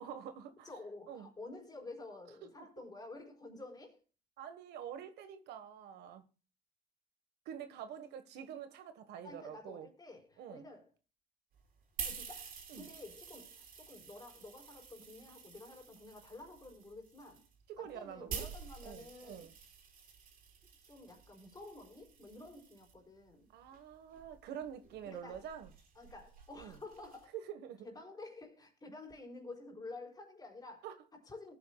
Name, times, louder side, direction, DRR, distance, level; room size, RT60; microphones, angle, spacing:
voice 1, 0.0-0.7 1.1-1.3 4.4-6.2 7.4-9.9 10.4-10.6 12.7-12.9 17.7-18.5 18.8-19.5 23.5-25.7 26.6-26.8 27.3-27.9 30.8-30.9, right 9 dB, 80° right, 1.4 m, -46 dB
voice 2, 0.6-4.0 9.2-10.9 12.0-17.4 17.8-19.5 20.8-23.5 25.0-25.5 26.0-27.3 27.8-30.9 31.1-31.5, left 2 dB, 25° left, 4.4 m, -51 dB
sound 1, 11.5-22.9 23.7-27.2, right 6 dB, 60° right, 4.5 m, -49 dB
19.0 x 9.4 x 2.3 m
cardioid pair, 110°, 17 cm